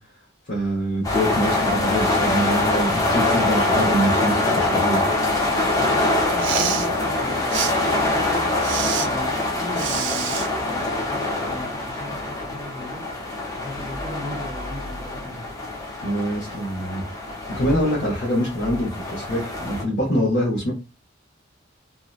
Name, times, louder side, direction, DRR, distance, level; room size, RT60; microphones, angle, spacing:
voice 1, 0.5-5.0 16.0-17.0 17.6-20.7, equal, 50° left, -4 dB, 0.8 m, -24 dB
sound 1, 1.0-19.8, left 2 dB, 20° left, 0.7 m, -24 dB
voice 2, 5.7-13.0 13.6-15.5, left 1 dB, 20° right, -2 dB, 0.6 m, -37 dB
Respiratory sounds, 6.3-6.9 7.5-7.7 8.6-9.1 9.7-10.5, right 9 dB, 65° right, 0.3 m, -27 dB
2.7 x 2.1 x 2.3 m, 0.30 s
head